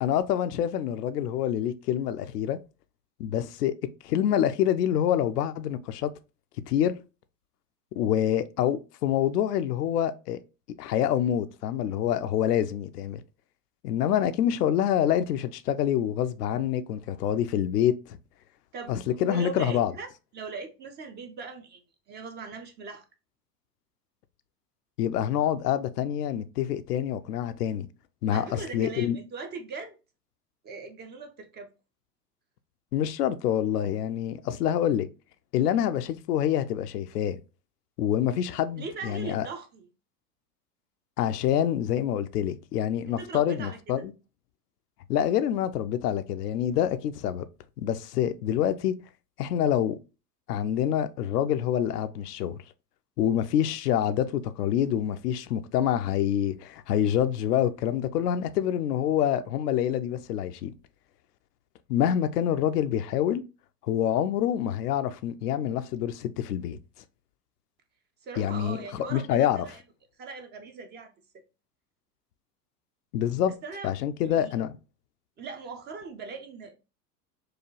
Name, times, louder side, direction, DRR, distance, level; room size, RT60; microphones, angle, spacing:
voice 1, 0.0-2.6 3.2-3.8 4.0-6.1 6.7-6.9 7.9-10.4 10.8-13.2 13.8-18.2 18.9-19.9 25.0-27.9 28.2-29.2 32.9-35.1 35.5-37.4 38.0-39.5 41.2-44.1 45.1-47.4 47.8-49.0 49.4-50.0 50.5-52.6 53.2-60.7 61.9-63.4 63.8-66.8 68.4-69.7 73.1-73.5 73.8-74.7, left 10 dB, 75° left, 0.6 m, -26 dB
voice 2, 19.2-20.1 20.3-21.8 22.1-23.0 28.3-29.9 30.6-31.7 38.8-39.9 43.2-44.0 68.2-69.8 70.2-71.1 73.3-73.9 74.2-74.5 75.4-76.7, right 4 dB, 20° right, 0.4 m, -40 dB
4.7 x 2.2 x 3.0 m
hypercardioid pair, 90°, 48 cm